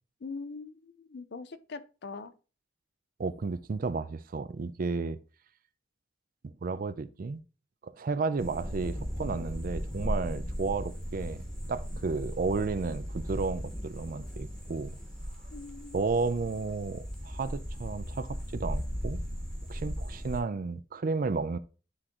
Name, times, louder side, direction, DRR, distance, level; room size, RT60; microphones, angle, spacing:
voice 1, 0.2-2.3 15.5-16.1, left 4 dB, 60° left, 0.5 m, -42 dB
voice 2, 3.2-5.2 6.4-7.4 7.8-11.4 11.7-14.9 15.9-19.2 19.7-21.6, right 4 dB, 45° right, 0.4 m, -32 dB
sound 1, 8.4-20.4, equal, 5° left, 1.1 m, -37 dB
9.8 x 3.6 x 2.9 m
head